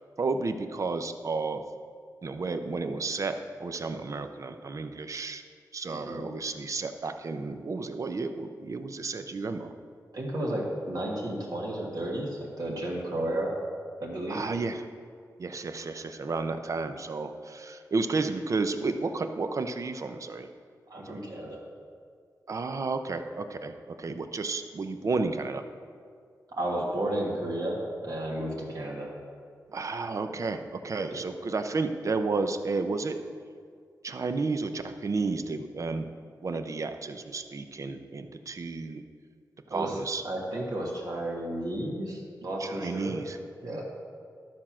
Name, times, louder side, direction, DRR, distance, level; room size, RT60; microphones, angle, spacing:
voice 1, 0.2-1.6 2.2-3.3 3.6-5.4 5.7-9.7 14.3-14.8 15.4-20.5 21.1-21.2 22.5-23.7 24.0-25.6 29.7-33.2 34.0-36.1 36.4-39.0 39.7-40.2 42.6-43.4, right 3 dB, 50° right, 8 dB, 0.6 m, -32 dB
voice 2, 5.9-6.3 10.1-13.5 14.0-14.4 20.9-21.6 26.6-29.1 31.1-31.2 39.7-40.0 40.2-43.2 43.6-43.8, right 1 dB, 65° right, -3 dB, 1.6 m, -32 dB
12.0 x 4.4 x 6.1 m, 2.1 s
wide cardioid pair, 110°, 7 cm